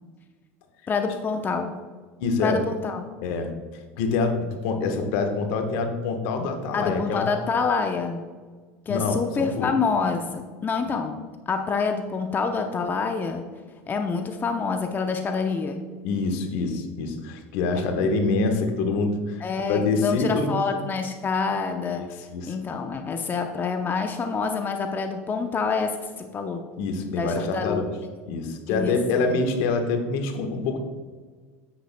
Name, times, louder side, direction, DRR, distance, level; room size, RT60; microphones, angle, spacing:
voice 1, 0.9-1.7 2.4-3.1 6.7-8.2 8.9-11.1 11.5-13.5 13.9-15.8 19.4-22.1 22.5-26.6 27.1-27.9 28.7-29.4, left 5 dB, 25° left, 5 dB, 0.7 m, -27 dB
voice 2, 2.2-2.6 3.2-3.5 4.0-7.3 8.9-9.7 16.0-19.4 19.7-20.6 22.3-22.5 26.8-27.9 28.3-30.8, left 4 dB, 65° left, 6 dB, 1.2 m, -25 dB
10.0 x 8.3 x 2.2 m, 1.5 s
hypercardioid pair, 90°, 8 cm